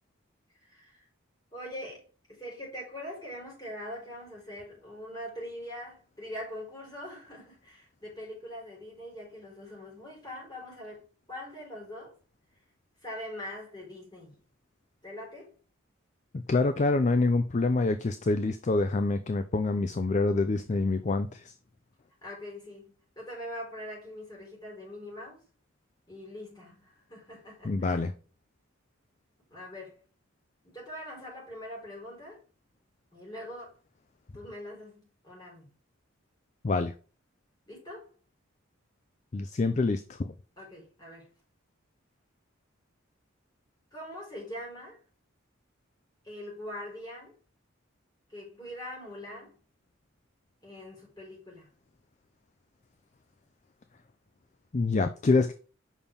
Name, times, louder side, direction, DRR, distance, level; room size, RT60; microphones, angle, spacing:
voice 1, 0.6-1.1 1.5-12.1 13.0-14.4 15.0-15.5 22.2-25.4 26.1-28.0 29.5-30.0 30.6-32.4 33.1-33.8 34.3-35.7 37.7-38.1 40.6-41.3 43.9-45.0 46.2-47.4 48.3-49.6 50.6-51.7, left 1 dB, 20° left, 4.0 m, -43 dB
voice 2, 16.3-21.5 27.6-28.1 36.6-36.9 39.3-40.3 54.7-55.5, left 3 dB, 35° left, 0.4 m, -26 dB
7.1 x 5.6 x 3.5 m
head